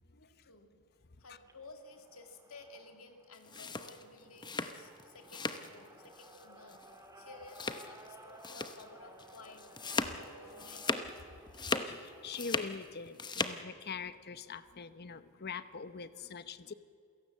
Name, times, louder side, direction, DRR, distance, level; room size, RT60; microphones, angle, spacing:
voice 1, 0.1-0.7 1.2-9.6 10.1-11.0 11.6-11.7 15.2-15.3 16.1-16.4, left 3 dB, 70° left, 5 dB, 2.4 m, -55 dB
sound 1, 1.3-12.8, right 1 dB, 15° right, 2.2 m, -57 dB
sound 2, 3.3-5.7 6.0-6.4 6.7-6.9 7.5-8.1 8.4-8.8 9.2-11.2 11.5-12.8 13.1-13.6, left 3 dB, 20° left, 0.9 m, -37 dB
voice 2, 11.9-16.7, left 5 dB, 45° left, 13 dB, 0.9 m, -43 dB
28.5 x 17.0 x 7.4 m, 2.4 s
head